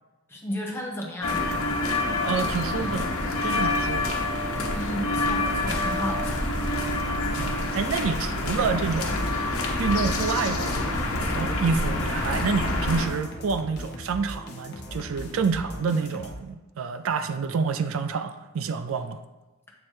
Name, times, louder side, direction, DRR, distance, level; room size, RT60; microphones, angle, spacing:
voice 1, 0.3-1.4 4.7-6.4, equal, 10° left, -2 dB, 0.9 m, -33 dB
sound 1, 1.2-13.1, left 2 dB, 90° left, 1.0 m, -27 dB
voice 2, 2.2-3.1 3.4-4.2 7.4-9.4 9.8-10.8 11.1-19.2, right 5 dB, 70° right, 10 dB, 0.4 m, -28 dB
sound 2, 2.3-16.3, left 1 dB, 50° left, 0.9 m, -41 dB
8.0 x 3.1 x 4.5 m, 1.2 s
head